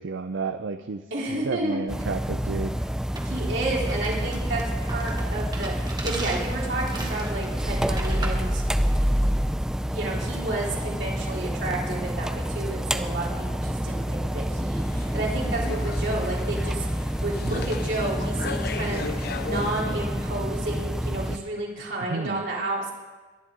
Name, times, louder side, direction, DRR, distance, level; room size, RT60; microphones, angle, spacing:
voice 1, 0.0-1.0 1.3-2.8 17.4-17.7 22.1-22.4, right 4 dB, 90° right, 8 dB, 0.5 m, -31 dB
voice 2, 1.1-1.8 3.2-8.6 9.9-22.9, right 2 dB, 70° right, -4 dB, 3.7 m, -31 dB
sound 1, 1.9-21.4, equal, 5° right, 0.4 m, -28 dB
sound 2, 3.1-8.5, right 3 dB, 25° right, 1.5 m, -38 dB
sound 3, 14.8-19.8, left 4 dB, 55° left, 0.6 m, -37 dB
22.5 x 10.5 x 3.8 m, 1.3 s
head